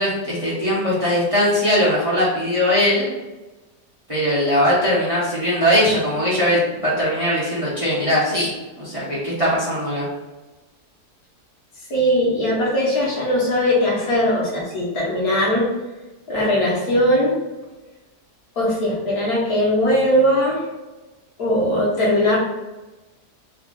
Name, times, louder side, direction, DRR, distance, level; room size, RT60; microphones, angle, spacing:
voice 1, 0.0-3.1 4.1-8.5 8.8-10.1, equal, 25° right, -7 dB, 0.9 m, -20 dB
voice 2, 11.9-15.7 16.3-17.3 18.5-20.6 21.4-22.4, equal, 65° left, -5 dB, 1.6 m, -19 dB
3.5 x 2.3 x 3.6 m, 1.1 s
omnidirectional pair, 1.7 m